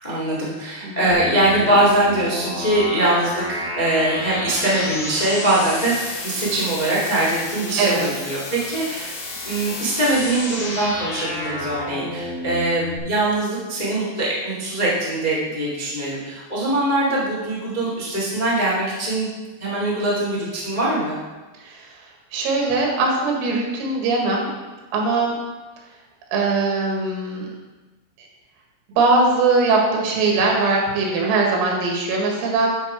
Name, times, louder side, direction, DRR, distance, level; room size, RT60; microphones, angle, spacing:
voice 1, 0.0-9.1 9.4-19.3 19.6-21.2, right 1 dB, 40° left, -6 dB, 0.6 m, -22 dB
voice 2, 0.8-1.2 7.8-8.1 21.6-21.9 22.3-24.5 24.9-25.4 26.3-27.5 28.2-28.3 29.0-32.7, right 3 dB, 90° right, -1 dB, 4.6 m, -20 dB
sound 1, 1.1-13.0, left 2 dB, 65° left, 4.2 m, -31 dB
11.5 x 6.9 x 4.7 m, 1.2 s
omnidirectional pair, 5.9 m